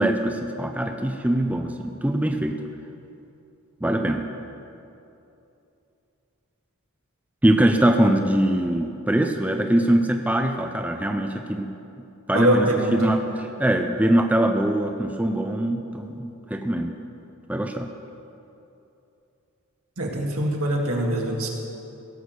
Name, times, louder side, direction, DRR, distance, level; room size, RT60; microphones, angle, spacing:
voice 1, 0.0-2.6 3.8-4.3 7.4-11.7 12.3-16.9 17.5-17.9, right 1 dB, 5° right, 4 dB, 0.5 m, -22 dB
voice 2, 12.3-13.0 20.0-21.5, right 1 dB, 70° right, 0 dB, 2.0 m, -23 dB
17.0 x 6.3 x 8.0 m, 2.8 s
head